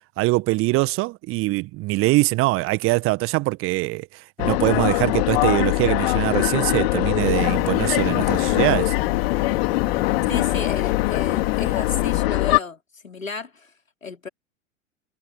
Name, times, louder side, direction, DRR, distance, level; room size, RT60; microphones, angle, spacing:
voice 1, 0.2-8.9, right 22 dB, 35° right, 1.4 m, -23 dB
sound 1, 4.4-12.6, left 22 dB, 45° left, 2.8 m, -22 dB
sound 2, 7.2-12.2, left 9 dB, 20° left, 2.9 m, -33 dB
voice 2, 10.2-13.7 14.0-14.3, left 4 dB, 80° left, 4.6 m, -32 dB
figure-of-eight pair, 95°, 39 cm